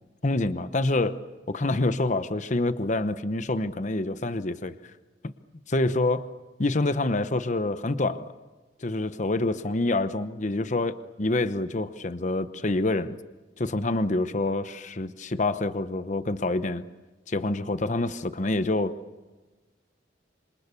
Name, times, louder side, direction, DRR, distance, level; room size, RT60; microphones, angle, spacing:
voice 1, 0.2-1.2 1.5-4.7 5.2-5.3 5.7-6.3 6.6-8.2 8.8-13.2 13.6-16.8 17.3-19.0, left 2 dB, 40° left, 0.8 m, -27 dB
27.0 x 26.0 x 7.0 m
head